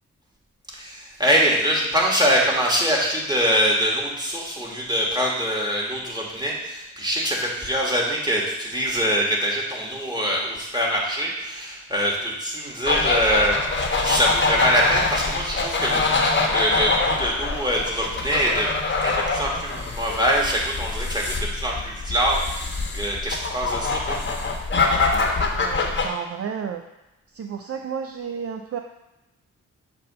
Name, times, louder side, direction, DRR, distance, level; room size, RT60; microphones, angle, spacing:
voice 1, 0.7-13.6 14.0-18.7 19.0-24.2, equal, 15° right, -3 dB, 1.9 m, -24 dB
sound 1, 12.8-26.1, left 3 dB, 35° left, 1.0 m, -24 dB
voice 2, 25.5-26.8 27.3-28.8, right 7 dB, 50° right, 5 dB, 0.5 m, -32 dB
6.6 x 2.6 x 5.4 m, 1.0 s
cardioid pair, 50°, 31 cm